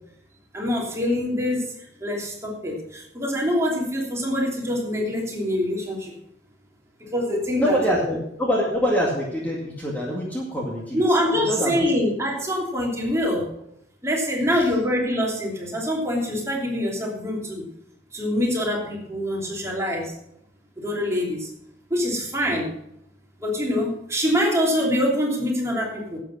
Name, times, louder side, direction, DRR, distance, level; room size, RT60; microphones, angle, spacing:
voice 1, 0.5-1.7 2.0-6.1 7.0-8.0 10.9-13.5 14.0-17.7 18.1-20.2 20.8-21.5 21.9-22.7 23.4-26.2, equal, 15° right, -2 dB, 3.0 m, -25 dB
voice 2, 7.6-11.0 11.3-11.9, equal, 10° left, -3 dB, 2.1 m, -25 dB
11.5 x 8.2 x 6.1 m, 0.77 s
head